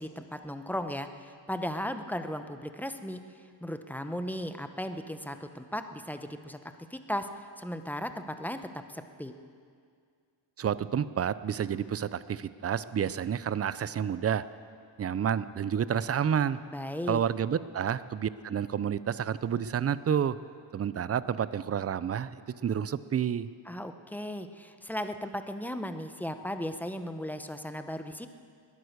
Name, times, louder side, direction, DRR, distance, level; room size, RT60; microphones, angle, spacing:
voice 1, 0.0-3.2 3.6-6.6 6.9-7.3 7.6-8.6 8.9-9.3 16.7-17.2 23.7-28.3, equal, 5° left, 8 dB, 0.7 m, -36 dB
voice 2, 10.6-14.4 15.0-16.6 17.1-20.4 20.7-23.5, right 8 dB, 35° right, 16 dB, 0.5 m, -29 dB
21.0 x 9.5 x 6.6 m, 2.2 s
cardioid pair, 110°, 46 cm